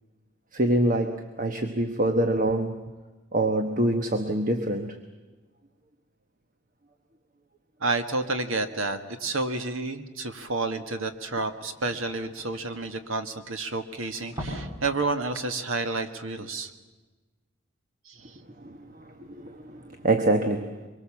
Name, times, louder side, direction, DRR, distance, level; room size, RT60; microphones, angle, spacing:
voice 1, 0.5-2.8 3.3-5.0 18.6-20.9, right 1 dB, 40° right, 7 dB, 1.1 m, -26 dB
voice 2, 7.8-16.7 18.0-18.2, right 3 dB, 75° right, 8 dB, 1.7 m, -30 dB
sound 1, 11.1-11.2 11.4-13.7 14.1-14.9 15.2-15.4 15.8-15.9, equal, 20° right, 7.5 m, -39 dB
24.5 x 23.0 x 7.3 m, 1.3 s
head